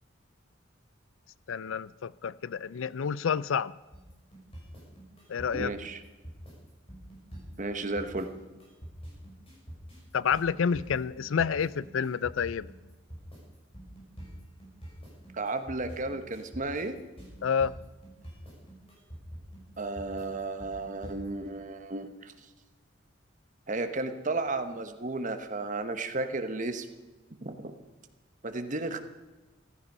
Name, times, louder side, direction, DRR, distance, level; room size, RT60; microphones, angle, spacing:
voice 1, 1.5-3.7 5.3-5.7 10.1-12.7 17.4-17.7, left 6 dB, 85° left, 19 dB, 0.4 m, -29 dB
sound 1, 3.9-21.5, right 1 dB, 30° left, 6.5 m, -46 dB
voice 2, 5.5-6.0 7.6-8.3 15.3-17.0 19.8-22.3 23.7-26.9 27.4-27.7 28.4-29.0, right 2 dB, 40° right, 8 dB, 1.1 m, -33 dB
15.0 x 13.5 x 5.5 m, 1.1 s
head